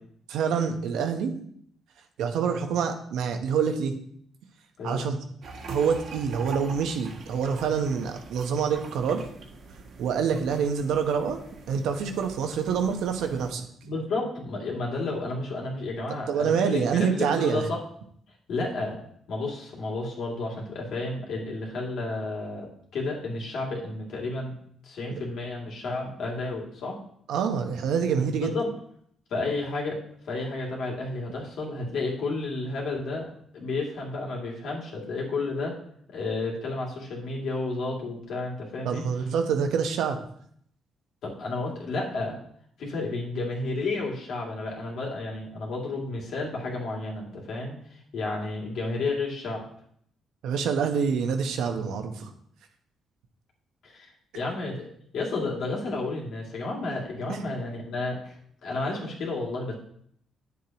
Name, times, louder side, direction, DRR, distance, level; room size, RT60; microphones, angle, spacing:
voice 1, 0.3-1.3 2.2-3.9 4.8-5.2 5.7-9.2 10.0-11.4 11.7-13.6 16.3-17.6 25.1-25.2 27.3-28.5 38.8-40.2 50.4-52.3 57.3-57.4, right 6 dB, 85° right, 5 dB, 1.0 m, -26 dB
sound 1, 5.4-13.5, right 3 dB, 65° right, 1.5 m, -43 dB
voice 2, 13.8-17.8 18.5-19.0 19.3-24.5 24.8-27.0 28.4-28.7 29.3-30.0 30.3-33.3 33.5-35.7 36.1-39.0 41.2-42.4 42.8-47.7 48.1-49.6 53.8-54.1 54.3-54.9 55.1-58.4 58.6-59.7, left 3 dB, 70° left, -2 dB, 2.5 m, -31 dB
9.3 x 7.3 x 2.9 m, 0.66 s
cardioid pair, 90°, 0 cm